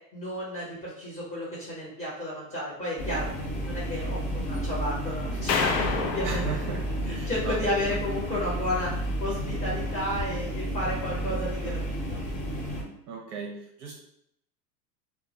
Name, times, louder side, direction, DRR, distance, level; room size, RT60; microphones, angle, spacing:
voice 1, 0.1-3.3 3.7-6.4 7.1-12.2, left 1 dB, 15° left, -7 dB, 0.8 m, -32 dB
office.refrigerator, 3.0-12.8, right 1 dB, 45° left, 1.0 m, -32 dB
sound 1, 5.5-7.8, left 5 dB, 80° left, 0.5 m, -30 dB
voice 2, 6.2-8.0 13.1-14.0, right 5 dB, 45° right, -1 dB, 0.6 m, -36 dB
2.2 x 2.0 x 2.8 m, 0.76 s
hypercardioid pair, 110°, 49 cm